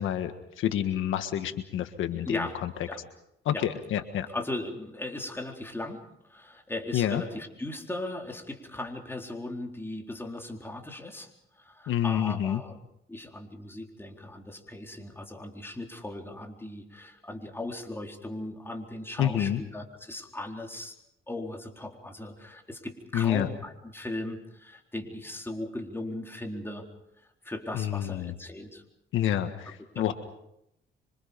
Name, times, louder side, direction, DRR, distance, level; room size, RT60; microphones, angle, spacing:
voice 1, 0.0-2.7 3.4-4.3 6.9-7.2 11.9-12.6 19.2-19.6 23.1-23.5 27.7-28.3 29.1-30.1, left 11 dB, 80° left, 8 dB, 1.6 m, -28 dB
voice 2, 2.3-2.6 2.9-3.0 3.5-3.6 4.3-12.8 13.1-21.0 21.3-26.9 27.2-28.8 30.0-30.1, left 1 dB, 10° left, 2 dB, 4.0 m, -38 dB
26.5 x 25.5 x 5.3 m, 0.80 s
cardioid pair, 90°, 20 cm